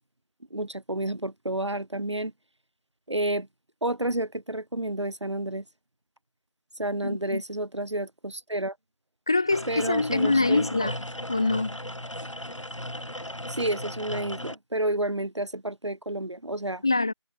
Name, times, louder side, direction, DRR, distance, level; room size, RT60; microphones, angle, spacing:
voice 1, 0.5-2.3 3.1-3.5 3.8-5.6 6.8-8.8 9.7-10.9 13.5-16.8, right 1 dB, 70° right, 4.4 m, -30 dB
voice 2, 7.0-7.4 9.3-10.9 11.3-11.8 16.8-17.1, left 3 dB, 10° left, 0.7 m, -24 dB
sound 1, 9.5-14.5, left 1 dB, 85° left, 5.0 m, -36 dB
figure-of-eight pair, 165°, 16 cm